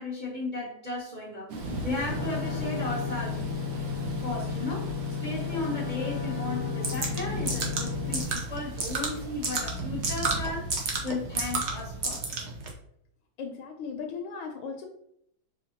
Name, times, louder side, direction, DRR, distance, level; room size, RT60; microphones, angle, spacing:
voice 1, 0.0-1.5 1.8-4.0 4.2-4.9 5.2-10.7 11.0-12.2, left 2 dB, 35° right, -6 dB, 0.7 m, -35 dB
Thunder / Rain, 1.5-12.3, right 2 dB, 65° right, 1.3 m, -39 dB
sound 1, 2.1-8.2, left 6 dB, 65° left, 0.7 m, -33 dB
sound 2, 6.8-12.7, right 3 dB, 80° right, 0.6 m, -32 dB
voice 2, 12.0-12.7 13.4-14.9, left 5 dB, 80° left, 3 dB, 1.3 m, -39 dB
5.0 x 2.7 x 2.7 m, 0.71 s
omnidirectional pair, 2.2 m